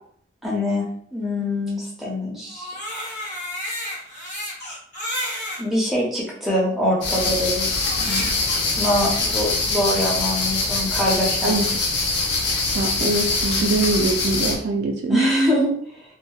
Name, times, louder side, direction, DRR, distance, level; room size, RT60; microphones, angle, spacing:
voice 1, 0.4-0.8 1.1-2.7 5.6-8.3 8.8-11.6 15.1-16.0, equal, ahead, -5 dB, 0.6 m, -24 dB
Crying sobbing, 2.5-5.6 6.4-6.5 7.8-8.6, left 1 dB, 40° left, 0.9 m, -31 dB
sound 1, 7.0-14.5, left 3 dB, 60° left, 0.5 m, -23 dB
voice 2, 12.7-15.2, right 2 dB, 55° right, 2 dB, 0.3 m, -23 dB
2.7 x 2.1 x 2.3 m, 0.62 s
head